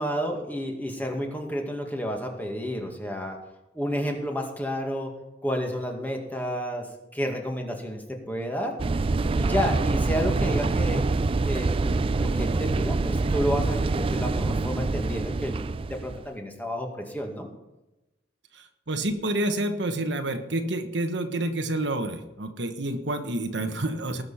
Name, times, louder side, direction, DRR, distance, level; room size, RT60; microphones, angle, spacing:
voice 1, 0.0-3.4 3.7-5.1 5.4-6.9 7.1-8.8 9.3-11.1 11.4-17.5, equal, 10° left, 2 dB, 2.1 m, -30 dB
sound 1, 8.8-16.3, right 3 dB, 30° right, 0.4 m, -25 dB
voice 2, 18.5-24.2, right 1 dB, 75° right, 6 dB, 1.3 m, -29 dB
19.5 x 6.7 x 5.7 m, 0.96 s
head